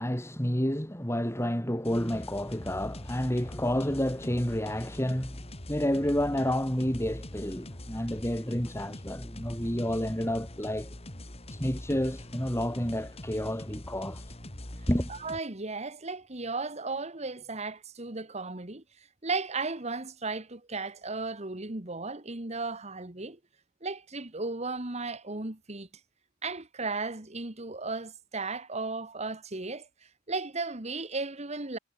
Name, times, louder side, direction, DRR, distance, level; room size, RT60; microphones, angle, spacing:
voice 1, 0.0-10.9 11.5-14.2 14.9-15.1, equal, 15° left, 3.6 m, -30 dB
sound 1, 1.8-15.4, left 1 dB, 30° left, 2.5 m, -43 dB
voice 2, 15.1-18.8 19.2-23.4 23.8-25.9 26.4-29.9 30.3-31.8, right 3 dB, 35° right, 1.8 m, -35 dB
head